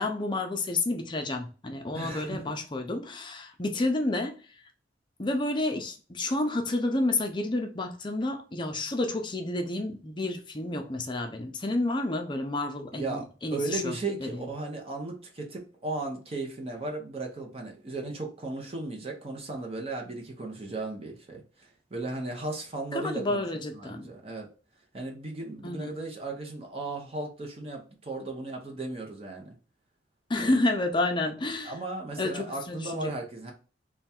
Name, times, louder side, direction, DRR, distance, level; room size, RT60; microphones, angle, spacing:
voice 1, 0.0-4.6 5.2-14.5 22.9-24.1 25.6-26.0 30.3-31.7 32.2-33.1, left 2 dB, 25° left, 0.5 m, -30 dB
voice 2, 1.9-2.6 12.9-23.4 23.7-24.5 24.9-29.6 30.4-30.6 31.6-33.5, right 2 dB, 35° right, 0.7 m, -36 dB
3.4 x 2.3 x 4.2 m
head